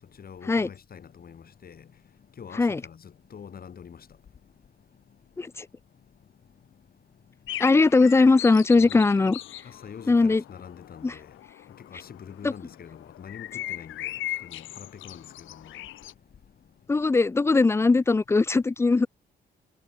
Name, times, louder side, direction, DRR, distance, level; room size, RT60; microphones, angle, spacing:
voice 1, 0.2-1.9 2.4-4.1 8.8-9.0 9.6-11.3 11.8-14.1 14.4-15.8, left 7 dB, 50° left, 4.1 m, -45 dB
sound 1, 7.5-16.1, left 14 dB, 85° left, 2.6 m, -39 dB
voice 2, 7.6-9.4 10.1-10.4 11.0-11.2 12.4-12.5 16.9-19.1, left 3 dB, 15° left, 0.3 m, -20 dB
cardioid pair, 90°, 20 cm